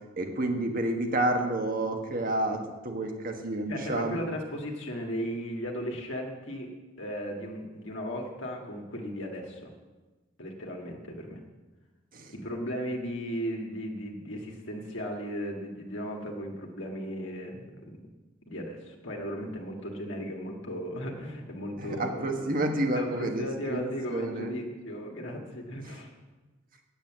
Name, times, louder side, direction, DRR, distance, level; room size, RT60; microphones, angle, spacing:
voice 1, 0.2-4.2 12.1-12.3 21.8-23.8 24.1-24.5 25.9-26.0, right 1 dB, 45° right, 4 dB, 1.4 m, -29 dB
voice 2, 3.7-6.7 7.0-9.7 10.4-11.4 12.3-18.1 18.5-22.5 22.9-26.1, equal, 70° left, 0 dB, 1.7 m, -36 dB
9.1 x 8.6 x 7.4 m, 1.2 s
head